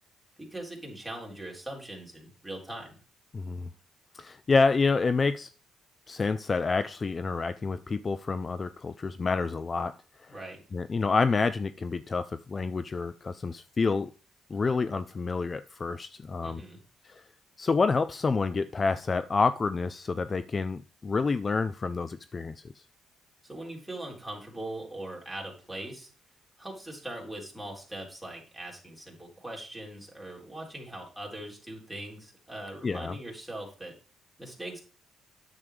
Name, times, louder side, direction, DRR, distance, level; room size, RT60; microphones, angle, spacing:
voice 1, 0.4-2.9 10.3-10.6 16.4-16.8 23.4-26.1 26.6-33.9 34.4-34.8, right 1 dB, 5° right, 3.8 m, -41 dB
voice 2, 3.3-3.7 4.1-5.5 6.1-9.9 10.7-14.1 14.5-16.6 17.0-17.2 17.6-22.5 32.8-33.1, left 4 dB, 35° left, 0.4 m, -28 dB
9.7 x 7.5 x 3.4 m
cardioid pair, 90°, 0 cm